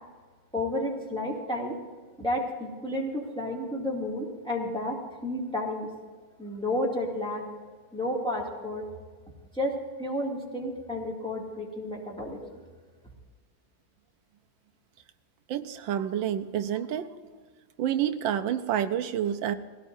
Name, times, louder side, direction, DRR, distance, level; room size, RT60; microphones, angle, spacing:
voice 1, 0.5-1.8 2.2-5.9 6.4-7.5 7.9-8.9 9.5-12.6, left 1 dB, 5° left, -3 dB, 2.4 m, -31 dB
voice 2, 15.5-17.1 17.8-19.5, right 10 dB, 90° right, 8 dB, 1.5 m, -28 dB
20.5 x 17.0 x 2.7 m, 1.5 s
omnidirectional pair, 2.0 m